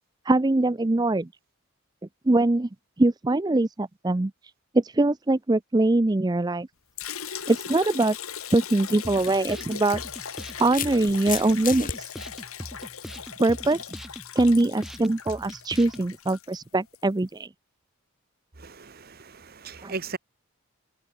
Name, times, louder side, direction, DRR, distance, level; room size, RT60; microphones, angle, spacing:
voice 1, 0.3-1.3 2.3-2.7 3.0-4.3 4.7-6.7 7.5-8.2 8.5-10.0 10.6-12.1 13.4-13.8 14.4-17.5 19.8-19.9, right 2 dB, 20° right, 0.4 m, -22 dB
Liquid, 7.0-17.1, left 8 dB, 80° left, 4.9 m, -39 dB
sound 1, 8.9-9.0 10.0-12.0, left 10 dB, 40° left, 1.7 m, -33 dB
sound 2, 9.0-16.1, equal, ahead, 2.7 m, -41 dB
voice 2, 18.6-20.2, right 4 dB, 45° right, 1.1 m, -37 dB
head